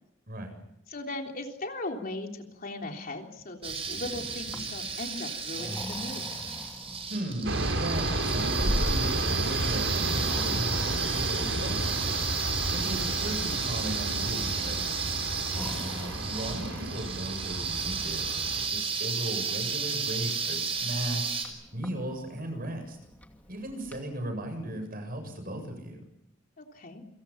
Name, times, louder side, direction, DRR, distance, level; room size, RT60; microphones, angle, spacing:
voice 1, 0.3-0.6 7.1-12.2 12.7-15.1 15.8-21.4 21.7-23.0 23.5-26.0, right 1 dB, 50° right, 6 dB, 7.8 m, -37 dB
voice 2, 0.9-6.3 12.7-13.1 15.5-15.8 26.6-27.0, left 2 dB, 45° left, 2 dB, 3.4 m, -38 dB
sound 1, 3.6-21.5, right 5 dB, 30° right, 5.6 m, -33 dB
Breathing, 4.3-24.0, equal, 10° left, 2.5 m, -42 dB
sound 2, 7.4-18.7, right 1 dB, 75° right, 3.6 m, -32 dB
29.5 x 26.0 x 5.9 m, 0.82 s
head